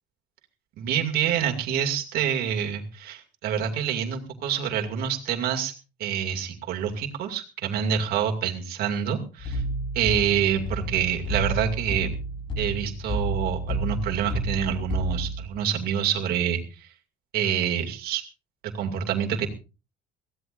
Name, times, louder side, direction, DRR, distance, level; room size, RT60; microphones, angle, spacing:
voice 1, 0.8-5.7 6.0-9.6 9.9-12.1 12.6-16.9 17.3-18.2 18.6-19.5, right 8 dB, 55° right, 3 dB, 2.4 m, -27 dB
sound 1, 9.4-15.5, right 1 dB, 25° left, 3.9 m, -30 dB
22.0 x 16.0 x 2.6 m, 0.32 s
cardioid pair, 170°, 19 cm